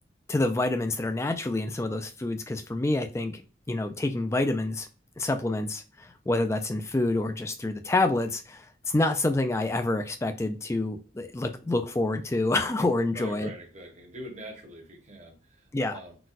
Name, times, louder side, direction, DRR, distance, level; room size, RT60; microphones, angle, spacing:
voice 1, 0.3-3.4 3.7-4.9 5.2-13.5 15.7-16.0, left 2 dB, 15° left, 0.3 m, -27 dB
voice 2, 13.1-16.2, right 1 dB, 35° right, 0.9 m, -44 dB
4.0 x 2.3 x 2.4 m
head